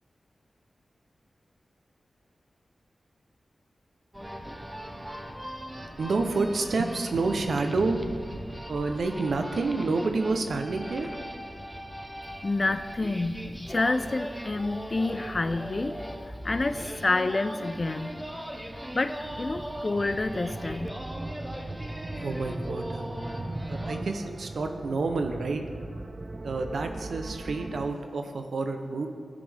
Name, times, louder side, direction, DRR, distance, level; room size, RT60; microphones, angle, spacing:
Russian accordionist, 4.1-24.0, equal, 10° right, 0.8 m, -39 dB
voice 1, 6.0-8.4 8.7-11.1 22.1-23.1 23.6-25.6 26.4-29.1, right 3 dB, 80° right, 5 dB, 0.7 m, -29 dB
voice 2, 12.4-18.1 18.9-20.9, left 2 dB, 45° left, 12 dB, 0.3 m, -28 dB
sound 1, 19.2-27.9, right 2 dB, 40° right, 0.3 m, -39 dB
13.0 x 5.2 x 3.4 m, 2.1 s
cardioid pair, 55°, 0 cm